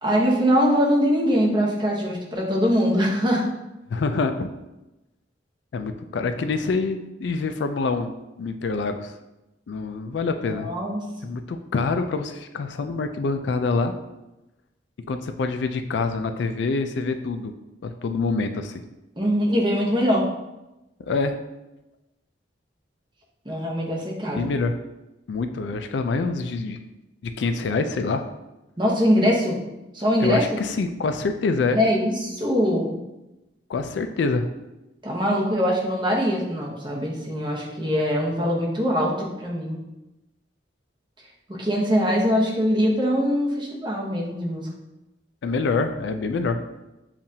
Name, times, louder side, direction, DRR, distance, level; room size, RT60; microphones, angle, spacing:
voice 1, 0.0-3.5 10.5-11.0 19.2-20.3 23.4-24.5 28.8-29.6 29.9-30.4 31.7-33.0 35.0-39.8 41.5-44.7, equal, 25° right, -3 dB, 0.9 m, -22 dB
voice 2, 3.9-4.5 5.7-8.1 8.4-9.1 9.7-10.7 11.2-13.9 15.1-17.5 17.8-18.8 21.0-21.4 24.3-24.8 25.3-26.8 27.2-28.2 30.2-31.8 33.7-34.5 45.4-46.6, left 4 dB, 70° left, 8 dB, 0.3 m, -26 dB
7.1 x 2.5 x 2.7 m, 0.97 s
head